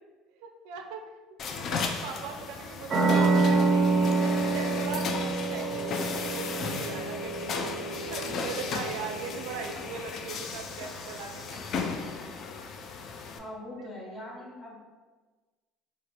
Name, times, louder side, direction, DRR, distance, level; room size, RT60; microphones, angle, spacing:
voice 1, 0.4-1.0 1.6-6.0 6.3-11.7 13.8-13.9, right 5 dB, 80° right, 3 dB, 0.4 m, -40 dB
sound 1, 1.4-13.4, left 5 dB, 45° left, 0.3 m, -36 dB
sound 2, 2.9-10.1, right 3 dB, 30° right, 0.6 m, -27 dB
voice 2, 13.4-14.8, left 1 dB, 20° left, -4 dB, 0.9 m, -41 dB
2.8 x 2.4 x 3.1 m, 1.3 s
cardioid pair, 130°, 0 cm